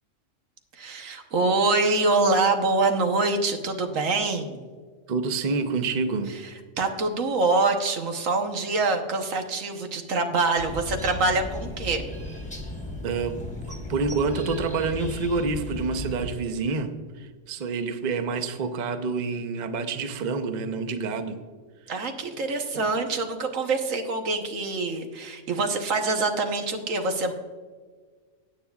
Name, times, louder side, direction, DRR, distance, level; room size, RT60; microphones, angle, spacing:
voice 1, 0.7-4.6 6.8-12.1 21.9-27.3, right 3 dB, 90° right, 5 dB, 1.4 m, -25 dB
voice 2, 5.1-6.4 13.0-13.4 13.7-21.4 22.7-22.9, right 4 dB, 45° right, 8 dB, 0.7 m, -28 dB
sound 1, 10.6-16.3, left 1 dB, 5° left, 1.1 m, -36 dB
16.5 x 9.0 x 2.3 m, 1.5 s
omnidirectional pair, 1.3 m